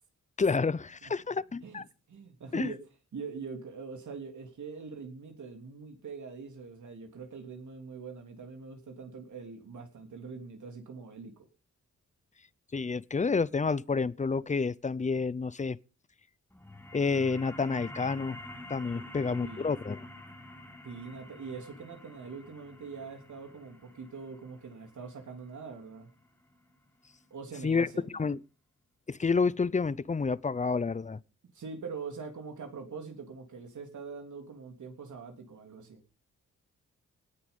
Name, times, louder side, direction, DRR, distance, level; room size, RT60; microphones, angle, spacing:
voice 1, 0.4-1.8 2.5-2.7 12.7-15.8 16.9-18.4 18.7-20.0 27.6-28.4 29.1-31.2, left 4 dB, 25° left, 0.6 m, -29 dB
voice 2, 2.1-2.8 3.1-11.3 18.9-19.7 20.8-26.1 27.3-28.2 31.5-36.0, right 5 dB, 75° right, 3.3 m, -43 dB
sound 1, 16.5-27.6, left 1 dB, 5° left, 1.8 m, -48 dB
18.5 x 9.7 x 5.4 m
wide cardioid pair, 125°, 30 cm